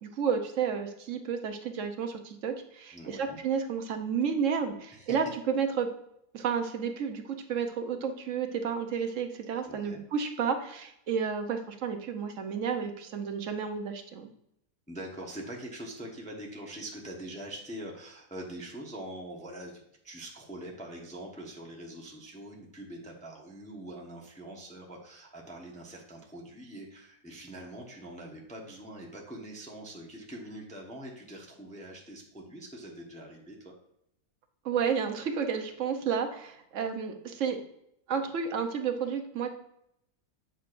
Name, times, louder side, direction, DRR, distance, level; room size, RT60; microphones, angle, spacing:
voice 1, 0.0-5.9 6.3-14.3 34.6-37.6 38.1-39.5, right 6 dB, 60° right, 5 dB, 1.1 m, -31 dB
voice 2, 2.9-3.4 4.9-5.2 9.7-10.0 14.9-33.7, right 1 dB, 5° left, -1 dB, 0.9 m, -43 dB
8.2 x 6.2 x 2.5 m, 0.76 s
omnidirectional pair, 1.7 m